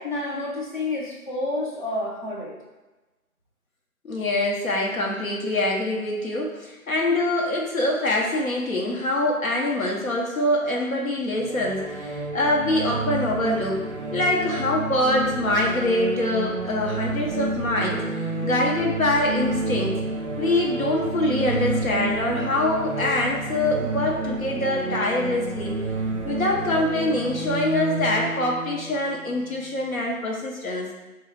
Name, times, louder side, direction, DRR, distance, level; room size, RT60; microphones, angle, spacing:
voice 1, 0.0-2.5, left 2 dB, 35° left, -5 dB, 0.7 m, -29 dB
voice 2, 4.0-13.8 14.1-18.0 18.4-20.0 20.4-25.7 26.2-30.9, left 1 dB, 65° left, -2 dB, 1.0 m, -24 dB
sound 1, 11.3-30.0, right 2 dB, 55° right, 0.5 m, -30 dB
3.6 x 2.3 x 3.3 m, 1.1 s
figure-of-eight pair, 160°, 44 cm